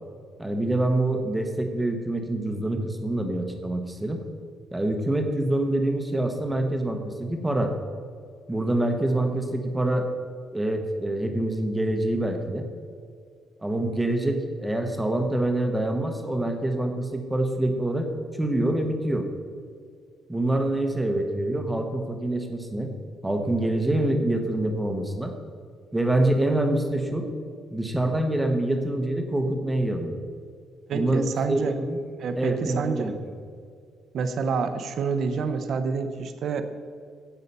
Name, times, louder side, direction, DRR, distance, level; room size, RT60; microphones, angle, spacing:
voice 1, 0.4-4.2 4.7-7.7 8.5-10.1 10.5-12.7 13.6-18.1 18.4-19.3 20.3-22.9 23.2-25.3 25.9-27.3 27.7-30.2 30.9-32.0 32.4-33.2, right 1 dB, 5° right, 4 dB, 1.0 m, -26 dB
voice 2, 30.9-31.7 32.2-33.1 34.1-36.6, right 5 dB, 50° right, 9 dB, 0.8 m, -27 dB
16.0 x 5.7 x 5.5 m, 2.2 s
cardioid pair, 170°, 0 cm